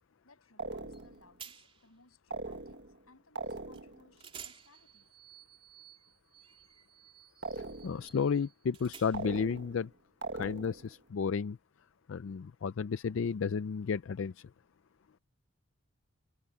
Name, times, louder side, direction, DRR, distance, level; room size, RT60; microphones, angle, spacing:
voice 1, 0.2-5.1, left 3 dB, 85° left, 7.8 m, -63 dB
sound 1, 0.6-1.3 2.3-3.0 3.4-4.1 7.4-8.2 9.1-9.9 10.2-10.9, right 3 dB, 55° right, 1.6 m, -41 dB
sound 2, 0.9-1.1 1.4-1.9 3.7-3.9 4.2-9.5, right 7 dB, 25° right, 3.5 m, -53 dB
voice 2, 7.8-9.9 10.4-11.6 12.1-14.3, left 6 dB, 65° left, 0.4 m, -32 dB
head